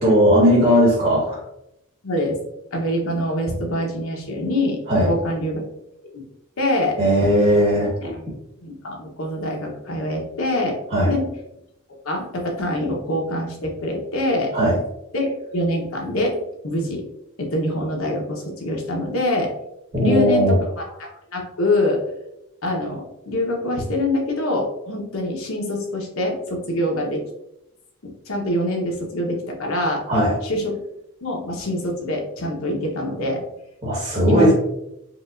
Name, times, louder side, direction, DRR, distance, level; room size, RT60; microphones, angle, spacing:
voice 1, 0.0-1.4 4.9-5.1 7.0-7.9 10.9-11.1 14.5-14.8 19.9-20.6 30.1-30.3 33.8-34.5, equal, 35° right, -6 dB, 1.3 m, -17 dB
voice 2, 2.0-2.4 2.7-5.7 6.1-6.2 6.6-7.0 8.0-8.2 8.6-10.8 11.0-11.3 12.0-14.5 15.1-16.4 16.6-17.0 17.4-19.5 20.0-22.0 22.6-27.2 28.3-30.0 30.4-30.8 31.2-33.4 34.3-34.5, left 1 dB, 70° left, 0 dB, 0.9 m, -24 dB
4.7 x 2.4 x 2.5 m, 0.83 s
head